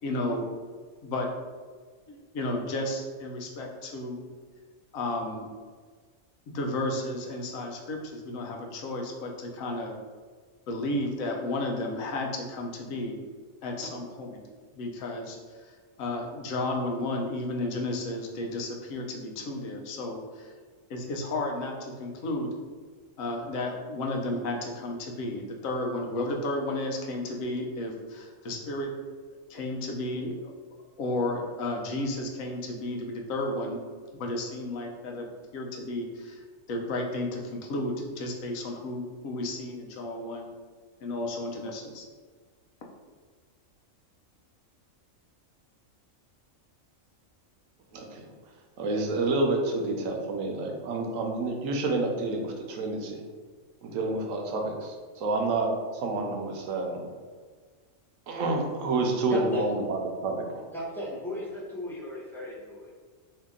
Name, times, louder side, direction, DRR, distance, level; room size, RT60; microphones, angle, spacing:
voice 1, 0.0-0.5 1.0-1.3 2.1-4.2 4.9-5.5 6.5-9.9 10.7-13.2 13.6-14.4 14.7-20.5 20.9-22.5 23.2-28.9 29.5-30.5 31.0-33.8 34.2-35.3 35.5-36.4 36.7-40.5 41.0-42.1, left 2 dB, 90° left, 1 dB, 1.0 m, -33 dB
voice 2, 47.9-48.2 48.8-53.2 53.8-55.7 55.9-57.0 58.3-60.6, right 2 dB, 80° right, 2 dB, 1.0 m, -29 dB
voice 3, 59.3-59.7 60.7-62.9, equal, 5° left, -7 dB, 0.5 m, -35 dB
2.8 x 2.8 x 3.5 m, 1.5 s
omnidirectional pair, 1.4 m